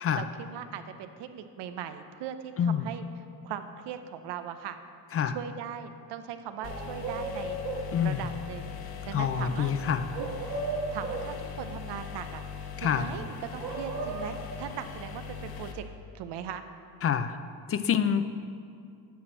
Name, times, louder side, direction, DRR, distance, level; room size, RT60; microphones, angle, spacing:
voice 1, 0.1-3.0 3.4-4.8 5.3-8.8 9.1-9.9 10.9-15.8 16.1-16.6, right 9 dB, 85° right, 9 dB, 0.7 m, -39 dB
sound 1, 6.6-15.7, left 7 dB, 65° left, 1.0 m, -40 dB
sound 2, 6.6-7.9 10.1-11.3 13.6-14.4, right 3 dB, 55° right, 2.3 m, -35 dB
voice 2, 7.9-8.3 9.1-10.1 12.8-13.1 17.0-17.4 17.7-18.2, left 8 dB, 35° left, 11 dB, 0.4 m, -27 dB
9.3 x 6.1 x 6.3 m, 2.4 s
cardioid pair, 135°, 40 cm